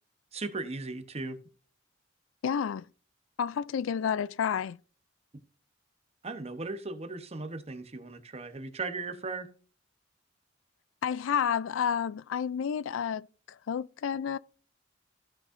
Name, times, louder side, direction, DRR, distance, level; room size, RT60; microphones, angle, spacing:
voice 1, 0.3-1.4 6.2-9.5, right 3 dB, 35° right, 0.9 m, -37 dB
voice 2, 2.4-2.8 3.4-4.8 11.0-13.3 13.7-14.4, left 7 dB, 85° left, 0.4 m, -30 dB
15.0 x 6.3 x 2.6 m
head